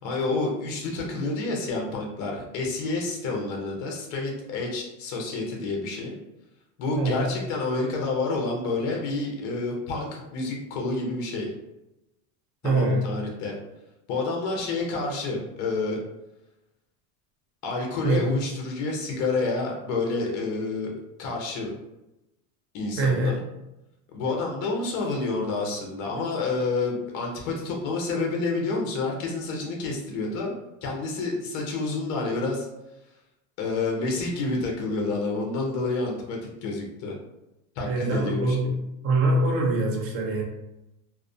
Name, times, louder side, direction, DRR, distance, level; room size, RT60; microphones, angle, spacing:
voice 1, 0.0-6.2 6.8-11.5 12.6-13.6 14.1-16.0 17.6-20.9 21.2-21.7 22.7-23.4 24.1-30.5 30.8-32.7 33.6-37.2 37.8-38.7, left 3 dB, 45° left, 0 dB, 0.6 m, -29 dB
voice 2, 12.6-13.0 18.0-18.2 23.0-23.3 37.8-38.7 39.0-40.4, right 2 dB, 35° right, 0 dB, 0.5 m, -23 dB
2.4 x 2.0 x 2.5 m, 0.92 s
cardioid pair, 155°, 42 cm